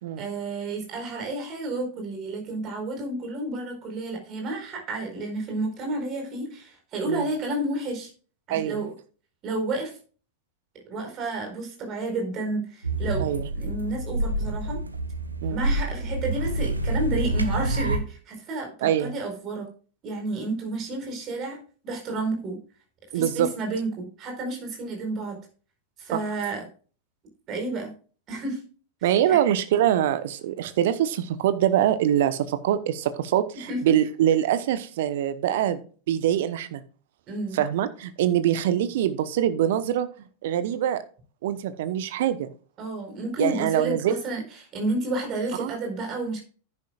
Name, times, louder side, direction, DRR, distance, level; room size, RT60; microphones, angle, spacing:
voice 1, 0.2-8.1 8.5-8.9 9.4-10.0 10.9-13.3 13.5-14.8 15.5-19.7 20.0-22.6 23.1-25.4 26.0-26.6 27.5-27.9 28.3-28.6 29.0-29.4 33.7-33.9 37.3-37.6 42.8-44.4 44.7-46.4, right 2 dB, 35° right, 3 dB, 4.6 m, -31 dB
voice 2, 8.5-8.8 13.2-13.5 15.4-15.6 18.8-19.1 23.1-23.5 26.1-26.2 29.0-35.8 36.1-36.8 37.5-40.1 40.4-41.0 41.4-42.5 43.4-44.2 45.6-45.8, right 11 dB, 55° right, 13 dB, 1.0 m, -24 dB
sound 1, 12.8-18.0, right 1 dB, 80° right, 1.0 m, -27 dB
10.5 x 9.9 x 2.4 m, 0.39 s
figure-of-eight pair, 90°, 0 cm